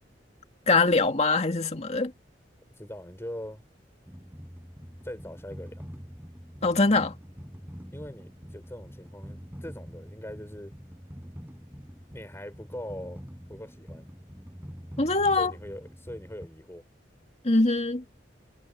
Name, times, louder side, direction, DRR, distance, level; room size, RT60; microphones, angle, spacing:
voice 1, 0.7-2.1 6.6-7.1 15.0-15.5 17.4-18.0, left 3 dB, 40° left, 2.3 m, -23 dB
voice 2, 2.8-3.6 5.0-5.9 7.9-10.7 12.1-14.1 15.4-16.8, left 1 dB, 15° left, 5.7 m, -41 dB
sound 1, 4.1-16.5, equal, 10° right, 5.8 m, -45 dB
head